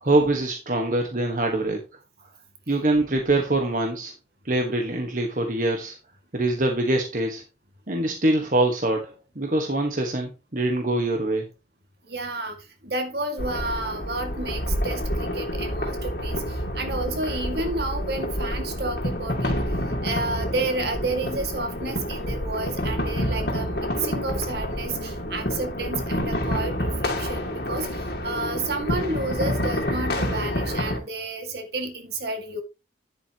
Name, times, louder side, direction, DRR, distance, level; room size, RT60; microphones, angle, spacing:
voice 1, 0.0-1.8 2.7-4.1 4.4-6.0 6.3-7.4 7.9-11.4, right 2 dB, 45° right, 1.5 m, -24 dB
voice 2, 12.0-32.6, right 2 dB, 65° right, 2.1 m, -31 dB
sound 1, 13.4-31.0, equal, 60° left, 2.4 m, -28 dB
10.5 x 8.2 x 3.0 m
head